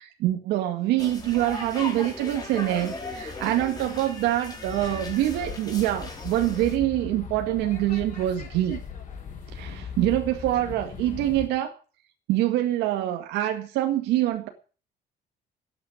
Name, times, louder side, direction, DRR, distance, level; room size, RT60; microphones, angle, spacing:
voice 1, 0.0-8.8 9.5-11.7 12.3-14.5, right 14 dB, 90° right, 5 dB, 2.0 m, -25 dB
sound 1, 1.0-6.8, left 3 dB, 20° left, 4.5 m, -37 dB
sound 2, 4.7-11.5, left 6 dB, 45° left, 5.3 m, -38 dB
12.5 x 9.4 x 8.9 m, 0.37 s
cardioid pair, 110°, 17 cm